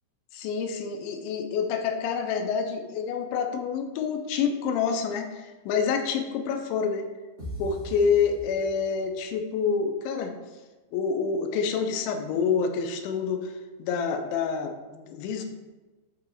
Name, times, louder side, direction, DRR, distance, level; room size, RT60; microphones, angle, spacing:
voice 1, 0.3-7.1 7.6-10.3 10.9-13.5 13.8-15.4, left 6 dB, 90° left, 5 dB, 2.9 m, -27 dB
sound 1, 7.4-9.2, equal, 85° right, 0.7 m, -40 dB
13.0 x 4.8 x 2.5 m, 1.2 s
omnidirectional pair, 5.2 m